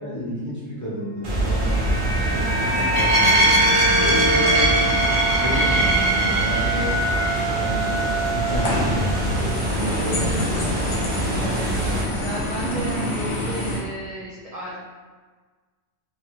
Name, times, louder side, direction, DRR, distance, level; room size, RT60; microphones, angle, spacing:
voice 1, 0.0-1.8 2.1-4.8 5.4-7.0 7.5-10.8, equal, 20° left, -9 dB, 0.7 m, -32 dB
sound 1, 1.2-12.0, right 1 dB, 50° right, 0.8 m, -23 dB
sound 2, 1.4-9.7 10.0-10.1, right 1 dB, 25° right, 0.5 m, -25 dB
voice 2, 2.3-2.8 11.4-11.7 12.2-14.8, right 1 dB, 85° right, -6 dB, 0.3 m, -33 dB
sound 3, 8.5-13.8, left 1 dB, 65° left, 0.9 m, -27 dB
2.8 x 2.5 x 2.9 m, 1.4 s
omnidirectional pair, 1.3 m